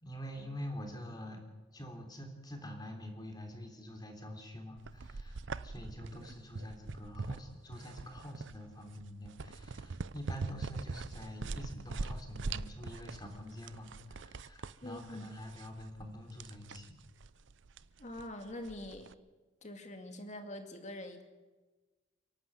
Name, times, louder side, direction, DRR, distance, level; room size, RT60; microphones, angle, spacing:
voice 1, 0.0-1.4 1.7-17.0, equal, 20° left, 3 dB, 3.4 m, -46 dB
sound 1, 4.8-19.1, right 4 dB, 70° right, 0.6 m, -43 dB
voice 2, 14.8-15.3 18.0-19.1 19.6-21.2, left 1 dB, 35° left, 5 dB, 2.3 m, -44 dB
29.5 x 11.5 x 7.9 m, 1.2 s
head